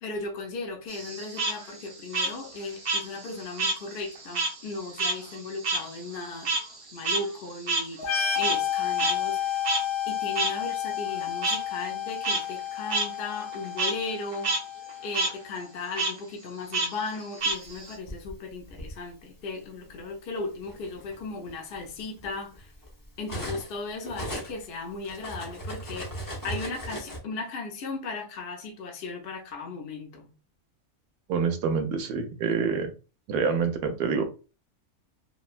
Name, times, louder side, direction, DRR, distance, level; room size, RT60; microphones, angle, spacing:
voice 1, 0.0-6.5 6.9-9.6 10.1-14.6 15.0-22.7 23.2-30.3, left 3 dB, 55° left, 0.7 m, -36 dB
Frog, 0.9-3.8 4.1-8.7 9.0-9.1 9.6-9.8 10.4-10.5 11.4-11.6 12.1-12.4 12.9-13.0 13.4-13.9 14.3-14.6 14.9-15.3 15.9-16.1 16.7-17.9, right 3 dB, 40° right, 0.7 m, -28 dB
sound 1, 8.0-15.5, left 9 dB, 80° left, 1.1 m, -31 dB
Cutlery silverware, 17.7-18.9 19.9-20.1 20.5-23.8 24.0-27.2, equal, 25° left, 0.4 m, -38 dB
voice 2, 31.3-32.9 33.3-34.3, right 5 dB, 90° right, 1.1 m, -26 dB
3.1 x 2.2 x 2.4 m
omnidirectional pair, 1.6 m